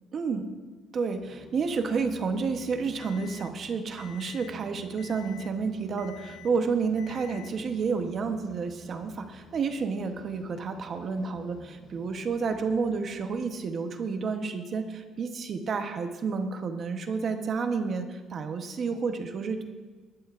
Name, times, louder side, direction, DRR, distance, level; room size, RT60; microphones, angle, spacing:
voice 1, 0.1-0.5 0.9-19.6, right 5 dB, 40° right, 7 dB, 0.9 m, -30 dB
sound 1, 1.1-13.9, right 1 dB, 5° left, 4.4 m, -52 dB
Alarm, 3.0-3.5 4.0-4.5 5.0-5.5 6.0-6.5 7.0-7.5, left 16 dB, 60° left, 0.6 m, -49 dB
20.0 x 12.0 x 2.5 m, 1.4 s
cardioid pair, 150°, 0 cm